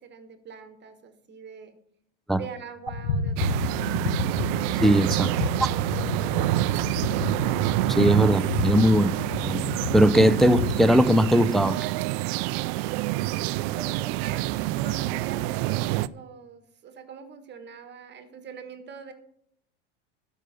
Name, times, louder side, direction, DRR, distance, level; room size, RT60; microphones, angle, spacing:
voice 1, 0.0-1.7 2.3-4.2 5.1-7.0 13.5-19.1, right 6 dB, 30° right, 8 dB, 1.6 m, -43 dB
sound 1, 2.9-10.9, left 3 dB, 75° left, 1.4 m, -31 dB
sound 2, 3.4-16.1, right 17 dB, 55° right, 0.5 m, -27 dB
voice 2, 4.8-5.3 7.9-9.1 9.4-9.6 9.9-11.8, equal, ahead, 10 dB, 0.3 m, -19 dB
12.0 x 5.6 x 6.9 m, 0.72 s
hypercardioid pair, 100°, 36 cm